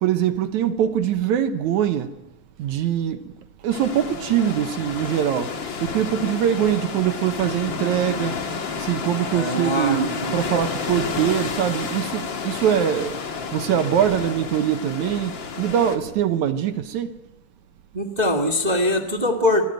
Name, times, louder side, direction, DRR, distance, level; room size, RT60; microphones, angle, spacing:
voice 1, 0.0-2.1 2.6-3.3 3.6-5.5 5.8-8.4 8.8-13.2 13.5-17.1, right 10 dB, 70° right, 2.2 m, -23 dB
sound 1, 3.7-16.0, left 5 dB, 40° left, 2.1 m, -30 dB
voice 2, 9.3-10.5 17.9-19.6, left 1 dB, 25° right, 0.9 m, -23 dB
26.0 x 17.0 x 9.1 m
omnidirectional pair, 3.8 m